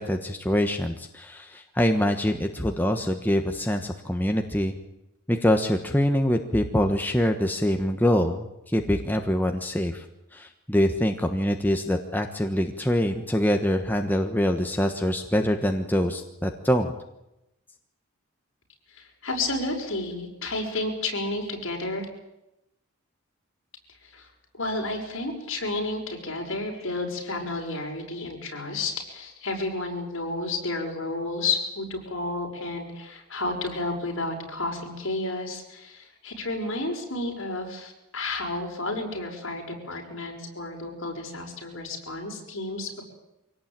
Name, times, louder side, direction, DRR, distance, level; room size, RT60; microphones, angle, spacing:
voice 1, 0.0-4.8 5.3-10.0 10.3-16.9, equal, 10° left, 4 dB, 1.3 m, -24 dB
voice 2, 18.9-22.1 24.0-24.3 24.5-43.0, left 2 dB, 60° left, 2 dB, 6.0 m, -31 dB
24.5 x 18.0 x 9.0 m, 0.90 s
head